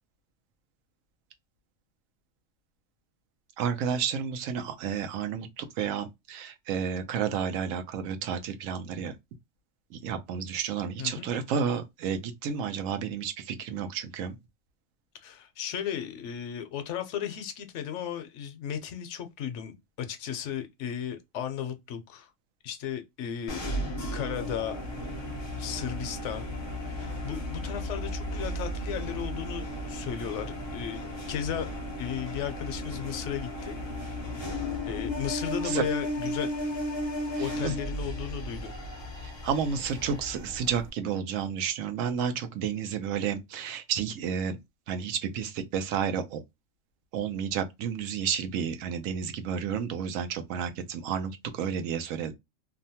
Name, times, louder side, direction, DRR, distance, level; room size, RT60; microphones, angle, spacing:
voice 1, 3.6-9.1 10.0-14.3 35.6-35.8 37.6-37.7 39.4-44.6 44.9-46.4 47.1-52.3, right 7 dB, 80° right, 1.0 m, -31 dB
voice 2, 11.0-11.3 15.2-22.3 22.6-23.6 24.1-24.8 25.6-26.5 26.7-31.0 31.3-31.7 32.0-33.8 34.9-36.5 37.4-38.7, left 9 dB, 70° left, 0.9 m, -35 dB
sound 1, 23.5-40.9, left 1 dB, 35° left, 0.4 m, -35 dB
2.7 x 2.1 x 2.7 m
omnidirectional pair, 1.3 m